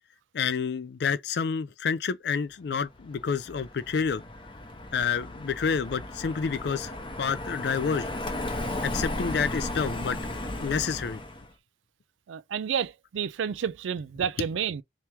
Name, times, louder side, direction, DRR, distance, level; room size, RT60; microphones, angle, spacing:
voice 1, 0.3-4.2 4.9-6.9 7.2-8.1 8.8-10.2 10.6-11.2, left 6 dB, 60° left, 0.4 m, -29 dB
Car passing by, 3.0-11.5, left 1 dB, 25° left, 0.7 m, -35 dB
voice 2, 12.3-14.8, right 7 dB, 80° right, 0.4 m, -30 dB
3.4 x 3.0 x 2.9 m
head